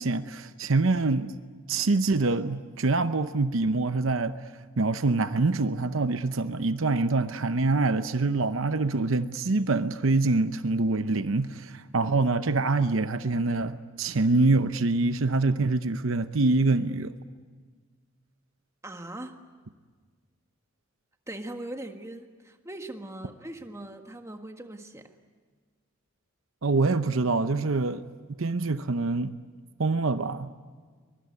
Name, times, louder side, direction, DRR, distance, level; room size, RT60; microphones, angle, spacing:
voice 1, 0.0-1.3 1.7-4.4 4.8-17.1 26.6-28.0 28.4-29.3 29.8-30.5, right 3 dB, 65° right, 0.8 m, -25 dB
voice 2, 18.8-19.4 21.3-25.1, right 1 dB, 15° right, 1.6 m, -40 dB
23.5 x 22.5 x 9.6 m
head